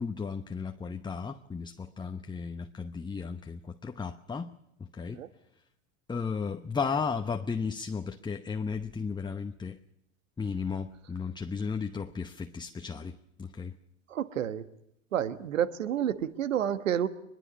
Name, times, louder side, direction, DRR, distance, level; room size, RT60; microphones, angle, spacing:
voice 1, 0.0-4.5 4.9-5.2 6.1-9.8 10.4-13.8, left 5 dB, 10° left, 0.9 m, -34 dB
voice 2, 14.1-14.6 15.1-17.1, right 9 dB, 85° right, 1.5 m, -29 dB
23.0 x 22.0 x 7.1 m
hypercardioid pair, 95°, 38 cm